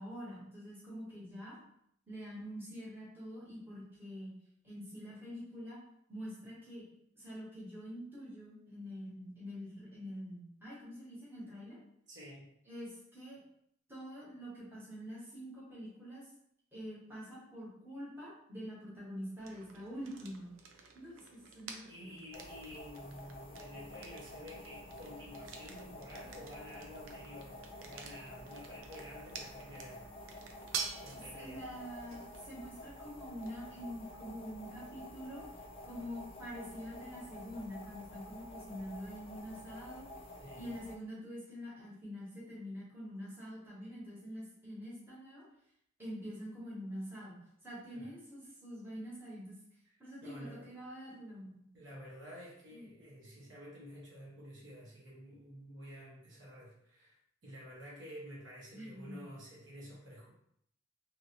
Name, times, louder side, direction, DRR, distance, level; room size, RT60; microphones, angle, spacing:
voice 1, 0.0-1.6 2.1-4.3 4.6-5.8 6.1-6.9 7.2-11.8 12.7-13.4 13.9-16.2 16.7-20.5 20.8-22.1 31.3-35.4 35.8-40.1 40.6-45.4 46.0-47.4 47.6-49.6 50.0-51.6 52.7-52.9 58.7-59.2, equal, 10° right, -8 dB, 1.1 m, -46 dB
voice 2, 12.1-12.5 21.8-30.0 31.0-31.6 40.4-40.7 47.9-48.1 50.2-50.7 51.7-57.1 57.4-60.3, equal, 65° right, -5 dB, 1.0 m, -50 dB
sound 1, 19.4-37.1, right 5 dB, 85° right, 0.5 m, -50 dB
sound 2, 22.3-41.0, left 1 dB, 30° left, 0.3 m, -50 dB
sound 3, 23.6-38.1, equal, 10° left, 1.1 m, -61 dB
2.9 x 2.6 x 2.9 m, 0.71 s
head